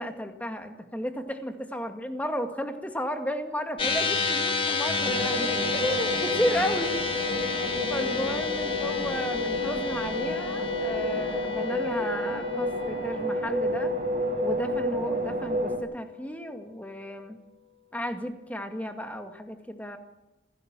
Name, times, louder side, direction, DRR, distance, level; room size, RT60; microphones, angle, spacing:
voice 1, 0.0-7.0 7.9-13.9 14.4-17.4 17.9-20.0, equal, 10° left, 5 dB, 2.1 m, -33 dB
sound 1, 3.8-16.3, left 6 dB, 30° left, 1.8 m, -31 dB
sound 2, 5.0-15.8, right 1 dB, 45° right, 4.8 m, -31 dB
28.5 x 16.5 x 7.5 m, 1.0 s
head